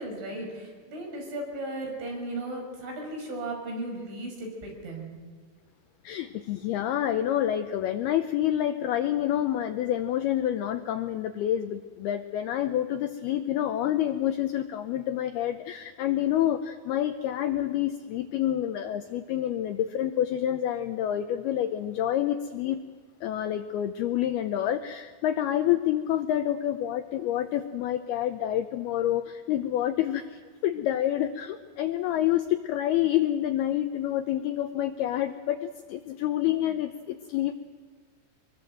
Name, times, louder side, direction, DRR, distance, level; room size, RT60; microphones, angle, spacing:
voice 1, 0.0-5.3, right 1 dB, 75° right, 1 dB, 8.4 m, -36 dB
voice 2, 6.0-22.8 23.2-37.6, left 11 dB, 80° left, 8 dB, 2.3 m, -28 dB
25.0 x 21.5 x 7.8 m, 1.5 s
omnidirectional pair, 5.5 m